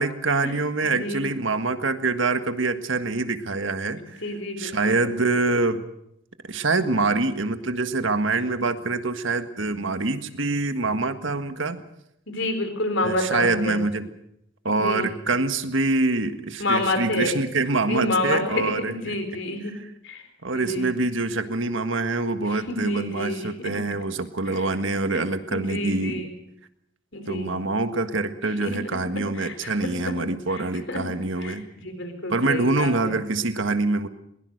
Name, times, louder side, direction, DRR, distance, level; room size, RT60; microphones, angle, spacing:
voice 1, 0.0-4.2 4.6-5.8 6.5-11.8 13.0-14.1 14.6-19.4 19.6-19.9 20.4-26.2 27.3-31.7 32.3-34.1, right 3 dB, 60° right, 9 dB, 1.7 m, -25 dB
voice 2, 0.8-1.2 4.2-5.0 12.3-13.8 14.7-15.1 16.6-17.3 17.9-19.7 20.0-20.2 20.5-20.9 22.5-23.7 24.5-24.6 25.1-25.2 25.5-26.3 27.1-27.5 28.6-28.8 29.3-29.7 30.5-30.6 30.9-31.0 31.4-33.2, left 2 dB, 55° left, 7 dB, 4.1 m, -28 dB
22.0 x 21.5 x 6.6 m, 0.75 s
head